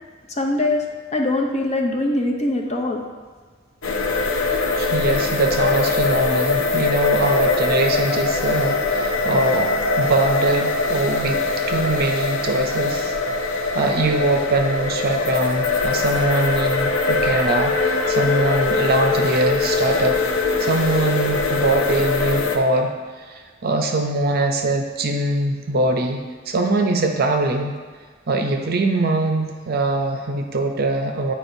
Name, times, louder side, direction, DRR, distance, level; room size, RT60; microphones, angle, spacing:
voice 1, 0.3-0.8 1.1-3.0, left 2 dB, 35° left, 2 dB, 0.6 m, -22 dB
sound 1, 3.8-22.6, left 3 dB, 80° left, 0.6 m, -22 dB
voice 2, 4.8-13.2 13.7-20.2 20.6-22.9 23.3-27.7 28.3-31.3, right 2 dB, 50° right, 4 dB, 0.6 m, -22 dB
8.6 x 4.6 x 2.6 m, 1.5 s
head